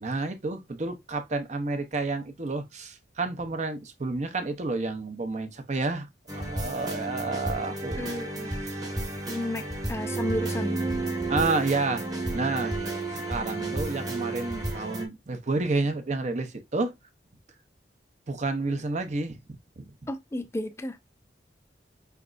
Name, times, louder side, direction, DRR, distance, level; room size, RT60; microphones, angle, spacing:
voice 1, 0.0-6.1 6.3-8.0 8.7-8.8 11.3-12.0 12.3-12.8 13.1-16.9 18.3-19.4 19.8-19.9, right 3 dB, 40° right, 0.7 m, -30 dB
sound 1, 6.3-15.1, right 2 dB, 25° right, 1.2 m, -32 dB
voice 2, 8.0-8.5 9.2-10.8 20.1-21.0, left 1 dB, 15° left, 0.4 m, -32 dB
5.0 x 3.3 x 2.4 m
head